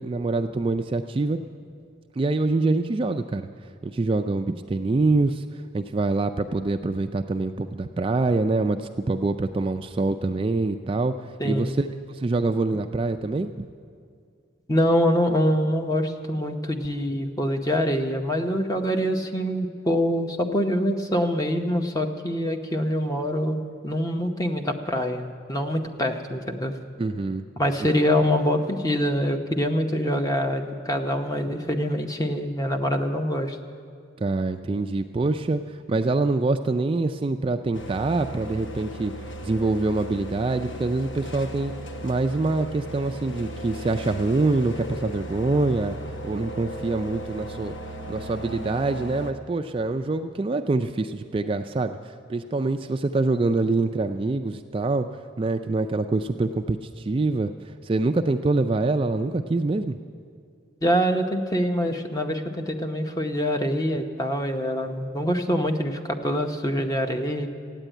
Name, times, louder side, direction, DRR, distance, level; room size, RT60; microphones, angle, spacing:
voice 1, 0.0-1.4 2.2-3.5 3.8-13.7 27.0-27.4 27.8-27.9 34.2-39.1 39.4-41.7 42.0-46.0 46.2-47.8 48.1-55.1 55.4-60.0, right 3 dB, 25° right, 7 dB, 0.3 m, -25 dB
voice 2, 11.4-11.8 14.7-26.7 27.6-33.6 60.8-67.5, equal, 20° left, 5 dB, 0.8 m, -25 dB
sound 1, 37.7-49.3, right 1 dB, 70° left, 1.1 m, -36 dB
14.0 x 9.1 x 9.0 m, 2.2 s
head